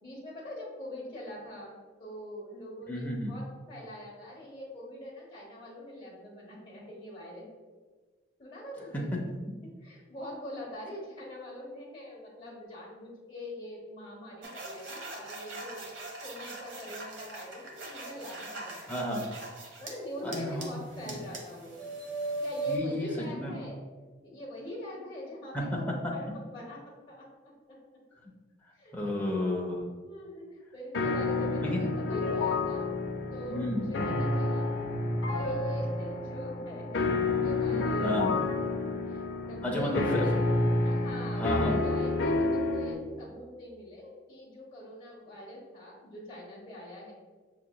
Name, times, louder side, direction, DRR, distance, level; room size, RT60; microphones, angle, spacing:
voice 1, 0.0-7.4 8.4-9.3 9.8-15.8 16.2-19.0 19.8-21.8 22.4-23.8 24.2-26.8 27.1-27.2 27.7-27.8 28.7-29.3 30.0-30.5 30.7-32.9 33.3-34.7 35.3-37.0 37.4-38.2 38.6-40.4 40.8-47.1, left 1 dB, 25° left, -6 dB, 1.0 m, -43 dB
voice 2, 2.9-3.3 8.9-9.2 18.9-19.3 20.2-21.2 22.7-23.6 25.5-26.1 28.9-29.8 31.6-31.9 33.5-33.9 38.0-38.4 39.6-40.2 41.3-41.9, left 1 dB, 10° left, -2 dB, 0.4 m, -32 dB
sound 1, 14.4-19.9 20.3-22.8, right 2 dB, 75° right, 0.7 m, -40 dB
sound 2, 30.9-42.9, left 2 dB, 65° left, 0.5 m, -29 dB
5.9 x 2.9 x 2.2 m, 1.4 s
head